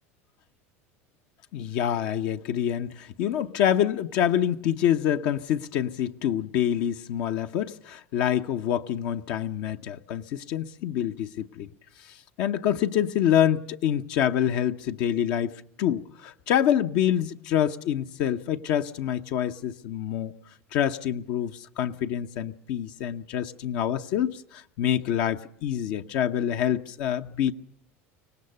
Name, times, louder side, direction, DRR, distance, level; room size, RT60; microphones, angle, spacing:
voice 1, 1.5-11.7 12.4-15.5 15.8-20.3 20.7-27.5, left 10 dB, 65° left, 0.8 m, -26 dB
24.5 x 18.5 x 6.8 m
hypercardioid pair, 85°, 7 cm